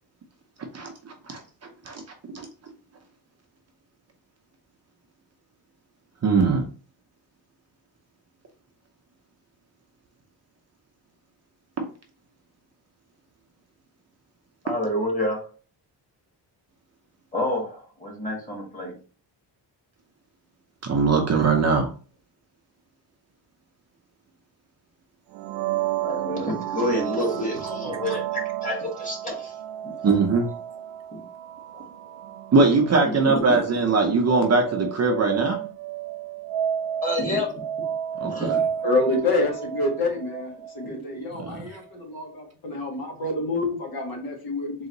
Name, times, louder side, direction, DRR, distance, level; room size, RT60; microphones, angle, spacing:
voice 1, 0.7-1.4 1.9-2.0 2.3-2.5 6.2-6.6 20.8-21.9 30.0-30.5 32.5-35.7 38.2-38.6 41.4-41.6, right 4 dB, 35° right, 2 dB, 0.7 m, -21 dB
voice 2, 14.6-15.5 17.3-18.9 26.0-29.6 31.1-31.2 31.7-31.8 33.2-33.6 37.0-37.6 38.3-38.6 40.8-40.9, left 1 dB, 20° left, -3 dB, 1.8 m, -28 dB
sound 1, 25.3-41.0, right 10 dB, 80° right, 0.5 m, -32 dB
voice 3, 38.8-44.7, left 2 dB, 55° left, 1 dB, 1.4 m, -27 dB
3.9 x 2.8 x 3.9 m, 0.39 s
wide cardioid pair, 155°, 43 cm